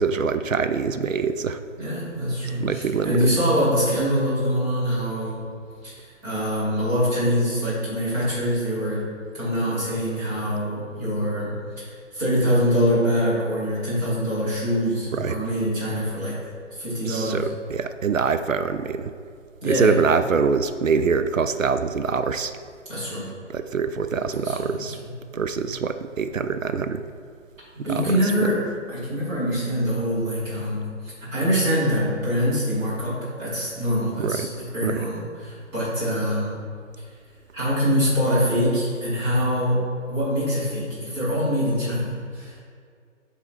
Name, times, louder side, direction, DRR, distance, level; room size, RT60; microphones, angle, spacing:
voice 1, 0.0-1.6 2.6-3.4 15.1-15.4 17.1-19.1 19.6-22.5 23.5-25.0 25.3-27.0 27.8-28.2 34.2-34.5 34.8-35.0, right 5 dB, 90° right, 10 dB, 0.5 m, -24 dB
voice 2, 1.8-5.4 5.8-9.1 9.3-16.4 16.8-17.5 19.6-20.0 22.9-23.2 24.3-25.0 27.8-28.6 28.9-36.6 37.5-39.8 40.1-42.6, equal, 10° right, -10 dB, 1.3 m, -24 dB
7.0 x 4.0 x 4.5 m, 2.2 s
figure-of-eight pair, 145°, 38 cm